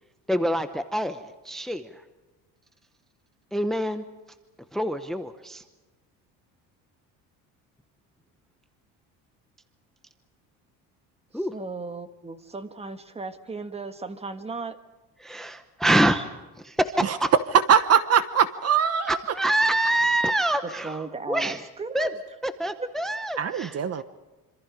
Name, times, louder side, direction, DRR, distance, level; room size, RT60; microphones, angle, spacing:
voice 1, 0.3-1.9 3.5-4.0 4.7-5.6 11.3-11.5 15.2-16.2 16.6-17.3 19.1-21.6 21.9-22.1 22.4-24.0, right 1 dB, ahead, 9 dB, 0.9 m, -26 dB
voice 2, 11.3-14.8 20.6-22.2 22.8-22.9, right 3 dB, 15° right, 9 dB, 1.4 m, -36 dB
voice 3, 17.7-19.2 23.4-24.0, right 8 dB, 40° right, 12 dB, 1.1 m, -22 dB
26.5 x 26.0 x 5.1 m, 1.1 s
cardioid pair, 155°, 40 cm